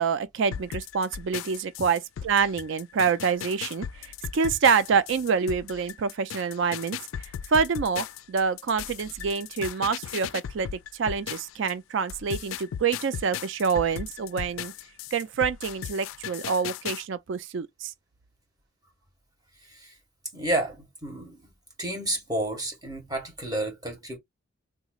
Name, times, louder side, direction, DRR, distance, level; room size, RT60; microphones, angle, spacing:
voice 1, 0.0-7.0 7.5-14.7 15.1-17.9, right 5 dB, 60° right, 0.4 m, -26 dB
sound 1, 0.5-11.7 12.1-17.0, left 9 dB, 70° left, 0.3 m, -37 dB
voice 2, 19.6-19.9 20.3-21.5 21.8-24.2, right 1 dB, 20° right, 1.5 m, -31 dB
3.6 x 3.0 x 2.4 m
head